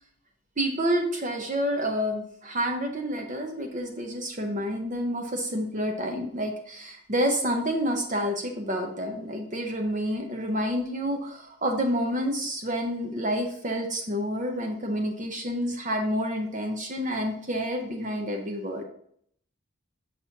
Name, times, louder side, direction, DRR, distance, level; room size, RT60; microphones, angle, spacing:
voice 1, 0.6-18.8, equal, 35° right, 3 dB, 0.8 m, -29 dB
6.6 x 5.8 x 2.8 m, 0.64 s
head